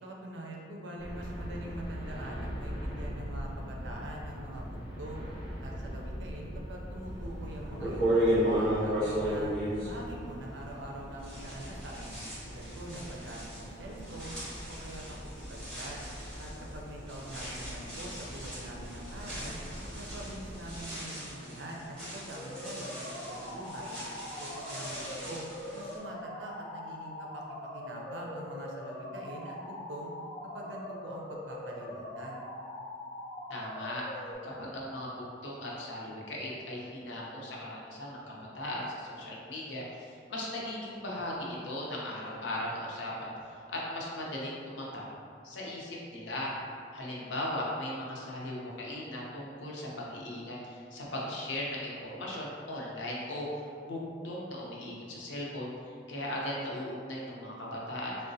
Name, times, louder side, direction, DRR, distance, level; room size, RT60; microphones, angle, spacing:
voice 1, 0.0-5.3 5.6-9.5 9.8-12.1 12.5-14.4 14.7-16.0 16.4-19.6 20.0-24.0 24.4-25.4 25.7-27.4 27.7-30.1 30.5-32.4, right 1 dB, 80° right, -1 dB, 0.5 m, -44 dB
sound 1, 1.0-20.9, equal, 35° right, 1.4 m, -42 dB
sound 2, 7.2-7.3 7.8-10.9 11.2-26.0, equal, 5° left, 1.2 m, -35 dB
sound 3, 22.4-34.3, left 1 dB, 30° left, 0.5 m, -42 dB
voice 2, 33.5-34.0 34.4-43.3 43.7-45.0 45.4-46.6 46.9-53.5 53.8-58.2, left 1 dB, 80° left, -4 dB, 0.6 m, -38 dB
3.7 x 2.1 x 2.6 m, 2.4 s
head